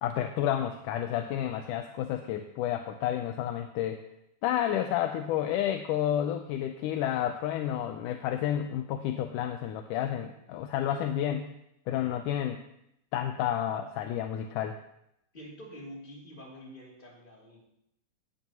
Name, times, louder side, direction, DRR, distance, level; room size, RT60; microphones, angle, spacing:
voice 1, 0.0-4.0 4.4-11.5 11.9-12.6 13.1-14.8, left 11 dB, 80° left, 6 dB, 2.2 m, -30 dB
voice 2, 15.3-17.6, equal, 15° left, -3 dB, 2.6 m, -46 dB
18.5 x 11.5 x 3.0 m, 0.78 s
omnidirectional pair, 3.7 m